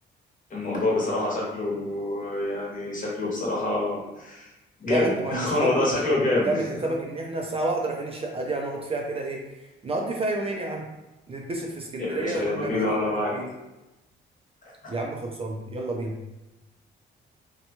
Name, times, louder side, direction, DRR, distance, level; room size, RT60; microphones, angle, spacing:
voice 1, 0.5-4.5 4.8-6.5 12.0-13.3 14.6-14.7, left 2 dB, 40° left, -4 dB, 1.1 m, -26 dB
voice 2, 4.9-10.9 11.3-12.8 13.1-13.5 14.9-16.2, right 2 dB, 30° right, 0 dB, 0.4 m, -30 dB
2.8 x 2.2 x 2.8 m, 1.0 s
cardioid pair, 90°, 20 cm